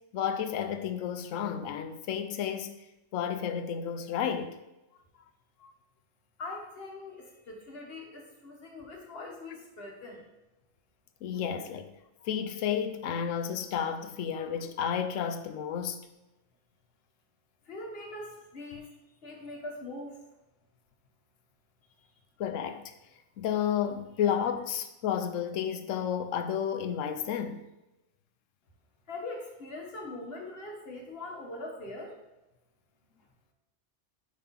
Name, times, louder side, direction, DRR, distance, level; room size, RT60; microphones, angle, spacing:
voice 1, 0.1-2.8 3.1-4.6 5.6-5.7 11.2-11.9 12.2-16.0 22.4-22.8 23.4-27.6, left 8 dB, 85° left, 1.0 m, -31 dB
voice 2, 6.4-10.2 17.6-19.0 19.2-20.2 22.0-22.1 29.1-32.2, left 2 dB, 50° left, 1.4 m, -42 dB
5.1 x 3.6 x 5.7 m
omnidirectional pair, 1.3 m